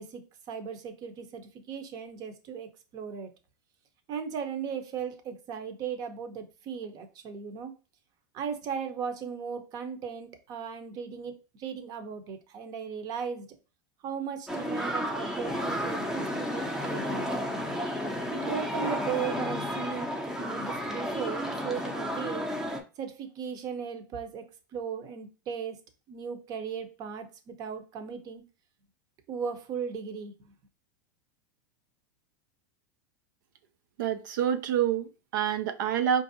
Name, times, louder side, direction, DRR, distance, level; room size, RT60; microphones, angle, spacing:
voice 1, 0.0-3.3 4.1-7.7 8.3-13.5 14.0-17.4 18.3-20.1 20.4-22.5 23.0-24.4 24.7-25.8 26.1-28.4 29.3-30.5, right 7 dB, 40° right, 0.7 m, -37 dB
sound 1, 14.5-22.8, equal, 5° right, 0.6 m, -32 dB
voice 2, 34.0-36.2, right 9 dB, 75° right, 0.4 m, -27 dB
4.6 x 2.6 x 2.6 m
supercardioid pair, 130°, 11 cm